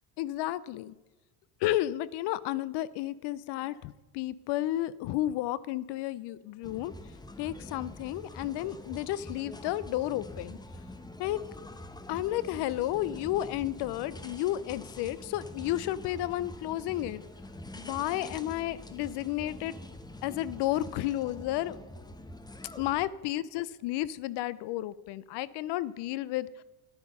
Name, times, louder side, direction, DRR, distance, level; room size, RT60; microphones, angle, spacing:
voice 1, 0.2-1.0 1.6-6.9 7.4-10.6 11.2-11.4 12.1-17.2 17.7-19.7 20.2-21.8 22.8-26.6, left 14 dB, 65° left, 19 dB, 0.5 m, -32 dB
sound 1, 6.6-23.0, left 1 dB, 10° left, 0.8 m, -45 dB
10.5 x 9.6 x 5.3 m, 1.1 s
supercardioid pair, 100°, 44 cm